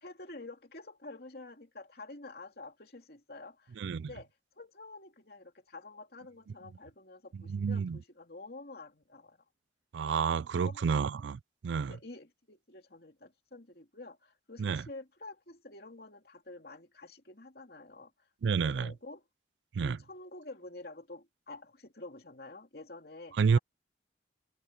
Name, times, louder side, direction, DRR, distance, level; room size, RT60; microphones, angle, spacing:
voice 1, 0.0-4.3 4.6-9.4 10.6-10.8 11.9-18.3 18.6-19.2 19.8-23.6, left 2 dB, 55° left, 2.9 m, -49 dB
voice 2, 3.8-4.1 7.3-8.0 9.9-11.9 14.6-14.8 18.4-18.9 19.7-20.0 23.4-23.6, right 6 dB, 75° right, 0.4 m, -30 dB
head